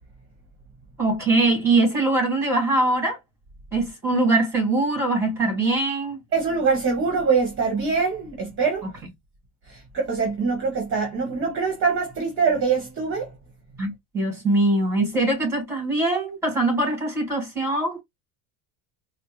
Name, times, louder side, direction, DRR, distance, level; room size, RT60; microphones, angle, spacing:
voice 1, 1.0-3.2 3.7-6.2 13.8-18.0, right 2 dB, 5° right, 2.4 m, -22 dB
voice 2, 6.3-8.9 9.7-13.3, right 5 dB, 30° right, 1.3 m, -24 dB
4.3 x 2.2 x 3.1 m
cardioid pair, 165°, 38 cm